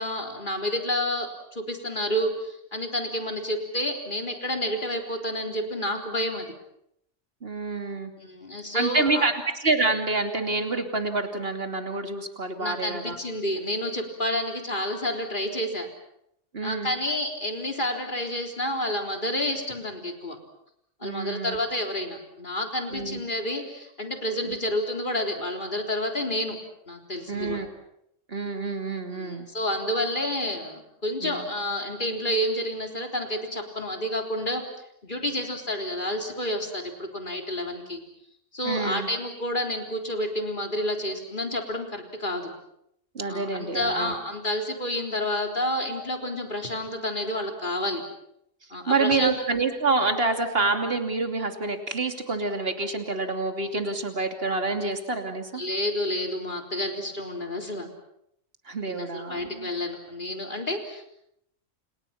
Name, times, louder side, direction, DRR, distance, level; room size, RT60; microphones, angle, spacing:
voice 1, 0.0-6.5 8.2-9.3 12.6-15.9 16.6-20.4 21.0-26.6 26.9-27.6 29.1-34.6 35.0-38.0 38.5-42.4 43.3-48.0 48.7-49.6 55.5-57.9 58.8-61.1, left 1 dB, 35° left, 3 dB, 4.0 m, -29 dB
voice 2, 7.4-8.1 8.7-13.2 16.5-16.9 21.0-21.6 22.9-23.2 24.4-24.6 27.3-27.7 28.3-29.5 31.2-31.5 38.6-39.1 43.1-44.2 48.9-55.6 58.7-59.7, right 3 dB, 45° right, 5 dB, 3.1 m, -27 dB
29.5 x 29.0 x 5.9 m, 0.76 s
omnidirectional pair, 1.4 m